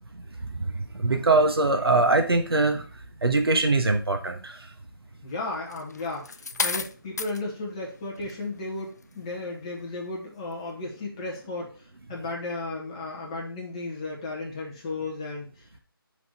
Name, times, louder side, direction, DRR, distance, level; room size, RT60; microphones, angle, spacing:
voice 1, 0.5-2.8 3.2-4.6, right 3 dB, 80° right, 5 dB, 1.2 m, -22 dB
voice 2, 5.2-15.8, left 2 dB, 15° left, -2 dB, 1.2 m, -34 dB
sound 1, 5.7-7.4 8.2-8.4, left 4 dB, 45° left, 0.4 m, -31 dB
6.0 x 4.1 x 4.6 m, 0.36 s
figure-of-eight pair, 170°, 13 cm